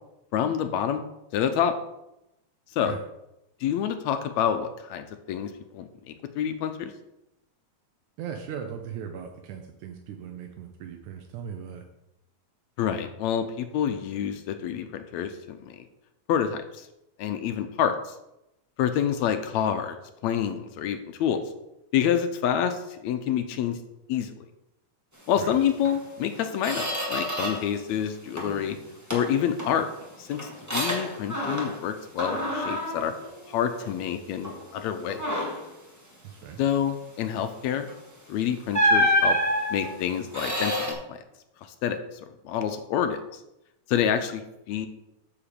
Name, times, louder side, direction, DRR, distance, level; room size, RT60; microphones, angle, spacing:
voice 1, 0.3-1.0 1.3-1.7 2.7-3.0 3.6-6.9 12.8-15.9 16.3-16.9 17.2-18.2 18.8-20.0 20.2-21.4 21.9-23.8 24.1-24.5 25.3-28.8 29.1-29.9 30.2-33.1 33.5-35.2 36.6-37.9 38.3-39.4 39.7-41.2 41.8-43.4 43.9-44.4 44.7-44.9, left 9 dB, 80° left, 8 dB, 1.8 m, -27 dB
voice 2, 8.2-11.8 25.4-25.6 36.2-36.6, right 7 dB, 80° right, 4 dB, 2.2 m, -38 dB
Squeak, 25.8-26.0 26.3-27.8 28.1-28.7 29.1-31.9 32.2-34.0 34.4-34.7 35.1-35.7 37.8-38.0 38.7-40.9, equal, 15° right, 0.6 m, -28 dB
8.7 x 4.9 x 6.7 m, 0.89 s
omnidirectional pair, 3.4 m